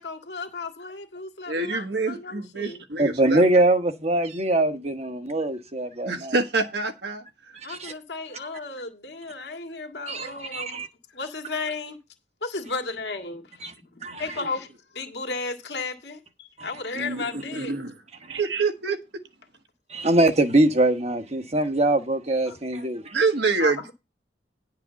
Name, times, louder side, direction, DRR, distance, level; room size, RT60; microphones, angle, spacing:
voice 1, 0.0-2.8 7.6-10.8 11.1-12.0 12.4-14.7 14.9-17.7 22.5-22.6 23.6-23.9, left 3 dB, 75° left, 2.0 m, -34 dB
voice 2, 1.5-3.4 6.0-7.2 14.4-14.5 16.9-17.9 18.3-19.0 23.1-23.9, right 3 dB, 75° right, 1.5 m, -26 dB
voice 3, 3.0-6.3 7.7-7.9 10.1-10.9 13.6-13.7 14.0-14.2 18.3-18.4 19.9-23.1, right 2 dB, 35° right, 1.1 m, -23 dB
10.0 x 4.8 x 6.8 m
head